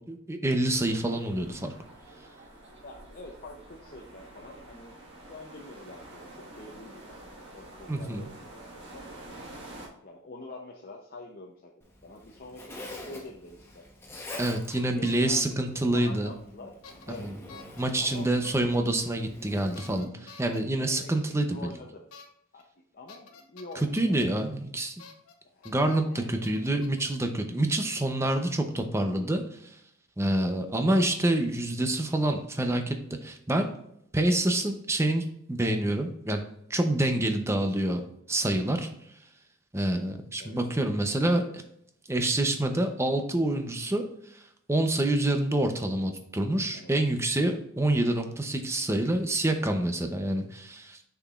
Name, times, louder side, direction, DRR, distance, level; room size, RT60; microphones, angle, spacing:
voice 1, 0.0-1.7 7.9-8.3 14.4-16.3 17.1-17.4 17.8-21.7 23.8-24.9 25.6-29.8 30.2-33.0 33.2-33.7 34.1-36.4 36.7-38.0 38.3-38.9 39.7-41.6 42.1-44.4 44.7-51.0, right 1 dB, 15° right, 5 dB, 0.6 m, -27 dB
sound 1, 0.7-9.9, right 1 dB, 55° right, 1.6 m, -48 dB
voice 2, 2.8-5.0 5.3-9.1 10.0-11.7 12.0-13.8 14.8-16.7 17.1-17.3 18.0-18.4 20.9-22.0 22.5-22.7 22.9-24.2 25.5-26.3 40.4-40.6 46.7-46.9, left 2 dB, 45° left, 1 dB, 0.7 m, -46 dB
Zipper (clothing), 11.8-20.0, left 1 dB, 10° left, 0.9 m, -46 dB
sound 2, 14.7-15.6 16.8-17.2 17.5-17.8 18.4-18.8 19.7-20.6 22.1-22.3 22.6-22.7 23.1-24.2 25.0-25.3 25.6-26.0 26.4-27.1, left 5 dB, 85° left, 0.9 m, -50 dB
6.9 x 5.9 x 2.4 m, 0.72 s
head